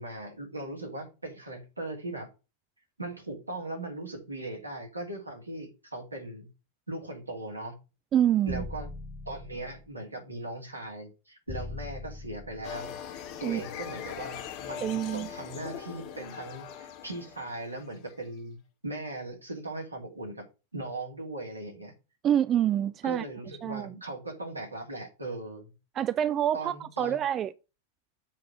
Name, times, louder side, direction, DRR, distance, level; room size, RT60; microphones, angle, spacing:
voice 1, 0.0-2.3 3.0-6.5 6.9-7.7 8.5-8.9 9.3-12.9 13.4-18.6 18.8-20.5 20.7-21.9 23.0-25.7 26.5-27.2, right 2 dB, 85° right, 2.8 m, -39 dB
voice 2, 8.1-8.6 13.4-13.6 14.8-15.3 22.2-23.2 23.6-23.9 26.0-27.5, right 10 dB, 30° right, 0.4 m, -26 dB
sound 1, 8.5-9.9 11.5-12.9, left 3 dB, 15° left, 0.9 m, -41 dB
sound 2, 12.6-18.2, left 9 dB, 40° left, 1.0 m, -41 dB
7.5 x 4.0 x 6.1 m
figure-of-eight pair, 90°, 0 cm